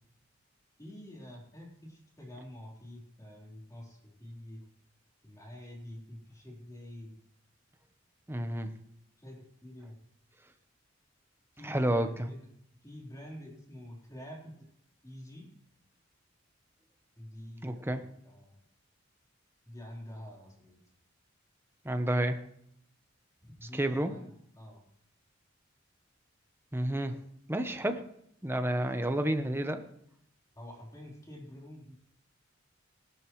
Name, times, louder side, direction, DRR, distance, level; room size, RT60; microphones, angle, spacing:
voice 1, 0.8-4.6 5.2-7.1 9.2-10.0 11.5-12.4 12.8-14.5 15.0-15.5 17.2-18.6 19.6-20.8 23.6-24.3 24.6-24.8 30.6-31.9, left 1 dB, 20° left, -2 dB, 3.9 m, -47 dB
voice 2, 8.3-8.8 11.6-12.3 17.6-18.1 21.8-22.4 23.7-24.1 26.7-27.2 27.5-28.0 28.4-29.8, right 1 dB, 10° right, 7 dB, 0.9 m, -30 dB
19.0 x 12.5 x 3.2 m, 0.73 s
head